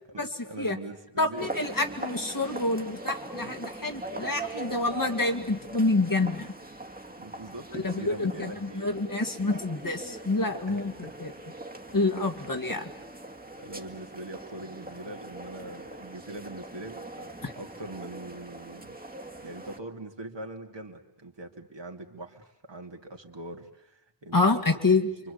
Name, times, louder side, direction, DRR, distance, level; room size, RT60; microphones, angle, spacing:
voice 1, 0.1-1.5 7.2-9.0 10.7-11.1 13.6-18.9 19.4-24.6 25.2-25.3, right 2 dB, 65° right, 2 dB, 2.9 m, -42 dB
voice 2, 1.2-6.5 7.7-10.9 11.2-11.3 11.9-12.9 17.4-17.5 24.3-25.1, left 3 dB, 45° left, 4 dB, 2.5 m, -27 dB
sound 1, 1.4-19.8, right 2 dB, 20° right, 2.1 m, -41 dB
28.5 x 24.5 x 8.5 m, 0.76 s
wide cardioid pair, 60°, 47 cm